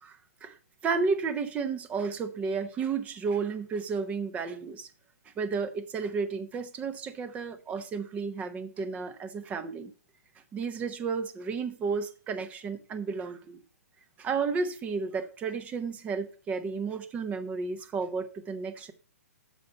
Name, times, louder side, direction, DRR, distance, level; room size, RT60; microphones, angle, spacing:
voice 1, 0.0-0.6 0.8-4.9 5.4-9.9 10.5-13.6 14.2-18.9, right 5 dB, 15° right, 0.8 m, -32 dB
6.8 x 5.2 x 7.0 m
figure-of-eight pair, 125°, 9 cm